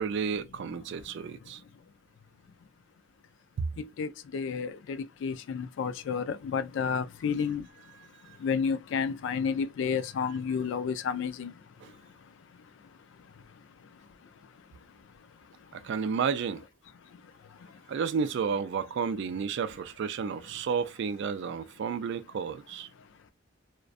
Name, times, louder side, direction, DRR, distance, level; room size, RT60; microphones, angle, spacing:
voice 1, 0.0-1.6 11.8-11.9 15.7-16.6 17.9-22.9, right 6 dB, 60° right, 0.3 m, -31 dB
voice 2, 1.3-1.7 3.8-15.9 17.0-17.9 23.0-23.3, left 6 dB, 60° left, 0.3 m, -34 dB
2.5 x 2.1 x 2.4 m
head